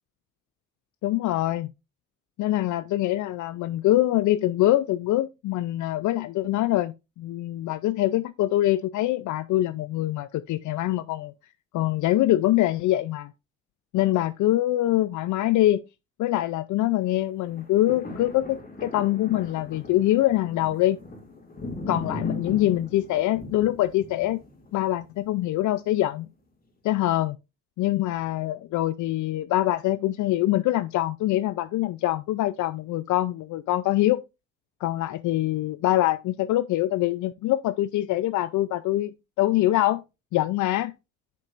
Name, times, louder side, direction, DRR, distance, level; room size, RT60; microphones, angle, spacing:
voice 1, 1.0-1.7 2.4-11.3 11.7-13.3 13.9-15.8 16.2-21.0 21.9-24.4 24.7-26.3 26.8-27.4 27.8-34.2 34.8-40.0 40.3-40.9, left 15 dB, 75° left, 0.5 m, -24 dB
sound 1, 17.4-25.7 26.2-26.3, left 2 dB, 30° left, 2.5 m, -38 dB
10.0 x 6.0 x 2.5 m
cardioid pair, 90°, 30 cm